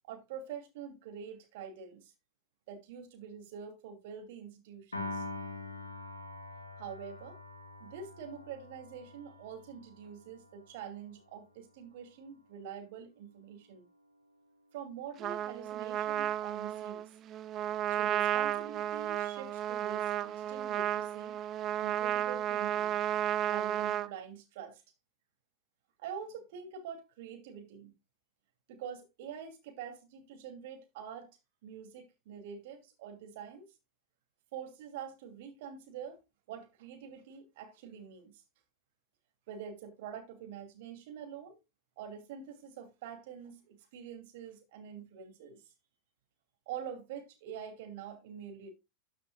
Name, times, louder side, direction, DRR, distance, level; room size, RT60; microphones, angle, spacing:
voice 1, 0.1-2.1 2.7-5.2 6.8-7.4 7.8-13.8 14.7-17.1 17.9-21.4 21.8-23.0 23.5-24.8 26.0-27.9 28.7-33.7 34.5-36.2 36.5-38.3 39.5-41.6 42.0-45.6 46.7-48.7, right 7 dB, 50° right, 2.6 m, -45 dB
Piano, 4.9-11.3, left 2 dB, 75° left, 1.8 m, -45 dB
Trumpet, 15.2-24.1, right 11 dB, 30° right, 0.5 m, -33 dB
13.0 x 6.0 x 2.3 m
figure-of-eight pair, 90°, 0 cm